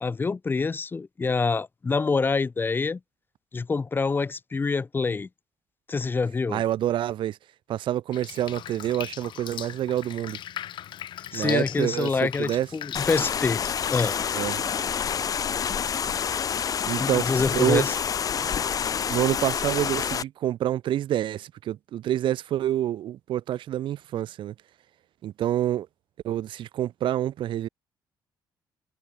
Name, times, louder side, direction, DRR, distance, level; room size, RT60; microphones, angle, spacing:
voice 1, 0.0-3.0 3.5-5.3 5.9-6.6 11.3-13.6 13.9-14.2 17.0-17.9, left 4 dB, 25° left, 0.9 m, -26 dB
voice 2, 6.5-7.4 7.7-10.4 11.3-12.7 14.3-14.6 16.9-17.3 17.5-17.8 19.1-24.5 25.2-25.9 26.2-27.7, right 12 dB, 75° right, 4.6 m, -27 dB
Drip, 8.1-14.1, left 11 dB, 70° left, 4.3 m, -39 dB
sound 1, 12.9-20.2, left 7 dB, 45° left, 1.1 m, -28 dB
cardioid pair, 110°, 8 cm